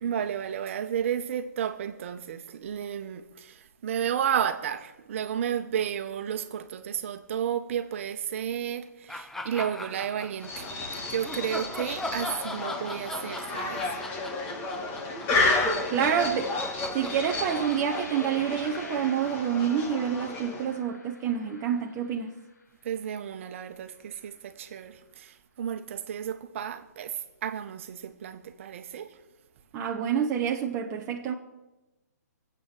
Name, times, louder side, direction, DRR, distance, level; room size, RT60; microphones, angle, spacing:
voice 1, 0.0-10.7 11.1-13.9 22.8-29.2, right 9 dB, 45° right, 1.5 m, -32 dB
sound 1, 9.1-10.7 11.2-19.5, left 1 dB, 5° left, 0.7 m, -40 dB
sound 2, 10.4-20.8, left 3 dB, 20° left, 2.2 m, -32 dB
voice 2, 15.9-16.5 16.9-22.3 29.7-31.3, right 8 dB, 25° right, 1.0 m, -28 dB
sound 3, 17.0-22.6 23.3-23.5 23.9-24.4, left 2 dB, 85° left, 5.0 m, -47 dB
21.5 x 8.4 x 7.6 m
hypercardioid pair, 145°, 9 cm